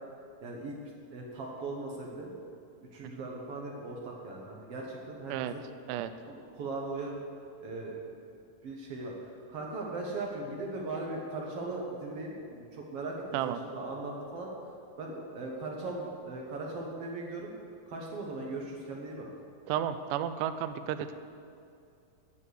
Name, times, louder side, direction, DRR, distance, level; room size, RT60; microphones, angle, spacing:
voice 1, 0.4-0.8 1.1-2.4 2.9-5.6 6.3-7.2 7.6-8.0 8.6-9.1 9.5-14.5 15.0-17.5 17.9-19.3, right 2 dB, 65° right, -1 dB, 1.5 m, -38 dB
voice 2, 19.7-21.2, right 10 dB, 85° right, 10 dB, 1.9 m, -32 dB
11.0 x 7.4 x 6.5 m, 2.4 s
omnidirectional pair, 4.1 m